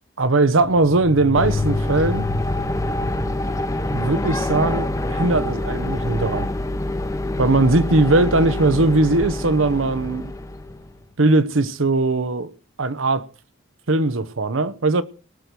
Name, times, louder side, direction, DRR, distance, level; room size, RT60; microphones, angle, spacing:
voice 1, 0.2-2.3 3.9-6.5 7.4-10.3 11.2-12.5 12.8-13.2 13.9-15.0, right 2 dB, 80° right, 1.0 m, -19 dB
sound 1, 0.6-9.0, left 2 dB, 10° right, 1.0 m, -32 dB
sound 2, 1.3-11.0, left 1 dB, 15° left, 0.8 m, -26 dB
19.0 x 6.9 x 6.0 m
head